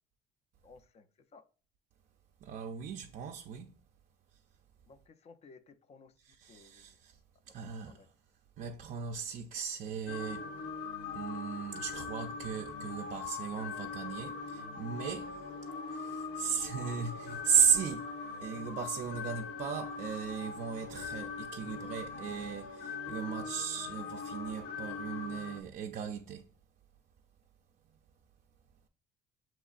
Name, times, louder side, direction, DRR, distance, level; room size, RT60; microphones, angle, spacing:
voice 1, 0.6-1.4 4.9-7.0 7.5-8.1, left 4 dB, 40° left, 0.5 m, -58 dB
voice 2, 2.4-3.7 6.2-7.2 7.5-8.1 8.6-10.5 11.1-15.4 15.9-18.1 18.4-26.5, right 7 dB, 55° right, 0.4 m, -35 dB
sound 1, 10.1-25.6, left 5 dB, 90° left, 0.6 m, -41 dB
sound 2, 12.8-20.2, left 2 dB, 70° left, 1.5 m, -62 dB
6.9 x 3.0 x 2.4 m
cardioid pair, 110°, 17 cm